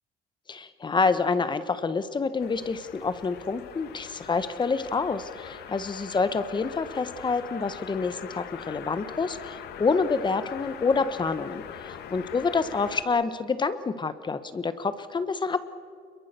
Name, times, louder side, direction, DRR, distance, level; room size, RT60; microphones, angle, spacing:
voice 1, 0.5-15.6, left 4 dB, 25° left, 12 dB, 1.3 m, -27 dB
sound 1, 2.4-13.0, left 9 dB, 75° left, 1.6 m, -42 dB
28.0 x 22.5 x 6.9 m, 2.3 s
cardioid pair, 110°, 17 cm